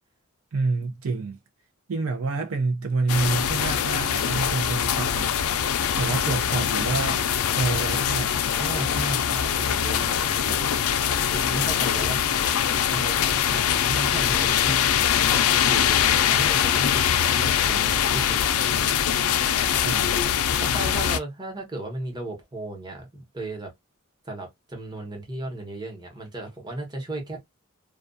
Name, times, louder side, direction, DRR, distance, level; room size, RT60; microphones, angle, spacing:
voice 1, 0.5-1.4 1.9-5.3 6.0-7.2 7.5-8.4 19.8-20.1, right 3 dB, 70° right, 0.5 m, -27 dB
sound 1, 3.1-21.2, left 9 dB, 90° left, 0.4 m, -23 dB
voice 2, 8.6-10.7 11.2-12.4 12.9-15.0 15.3-15.9 16.3-18.5 20.6-23.7 24.2-27.4, right 1 dB, 20° right, 1.0 m, -35 dB
2.3 x 2.3 x 2.4 m
head